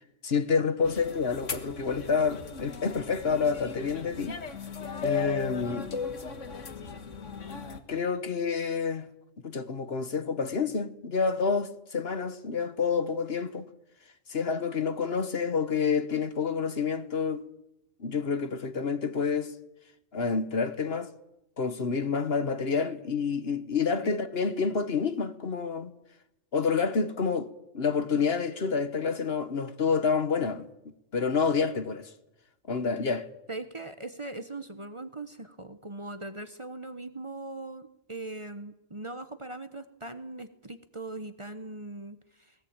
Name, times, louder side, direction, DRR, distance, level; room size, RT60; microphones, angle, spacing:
voice 1, 0.2-4.4 5.0-5.9 7.9-9.1 9.4-13.6 14.3-17.4 18.0-19.5 20.1-21.1 21.6-25.9 26.5-30.7 31.1-32.1 32.7-33.3, left 5 dB, 55° left, 1.5 m, -28 dB
sound 1, 0.9-7.8, left 7 dB, 85° left, 1.8 m, -37 dB
voice 2, 33.5-42.5, right 2 dB, 25° right, 1.1 m, -40 dB
19.5 x 18.0 x 8.9 m
omnidirectional pair, 1.2 m